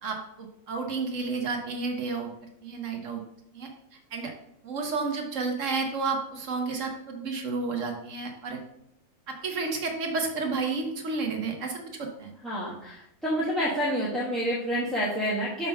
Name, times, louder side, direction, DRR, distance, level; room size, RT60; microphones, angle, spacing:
voice 1, 0.0-2.3 2.6-3.2 3.5-3.7 4.1-4.3 4.6-8.6 9.3-12.3, right 4 dB, 65° right, 3 dB, 1.2 m, -31 dB
voice 2, 12.4-15.7, equal, ahead, -7 dB, 1.1 m, -28 dB
5.4 x 3.7 x 5.5 m, 0.76 s
omnidirectional pair, 1.5 m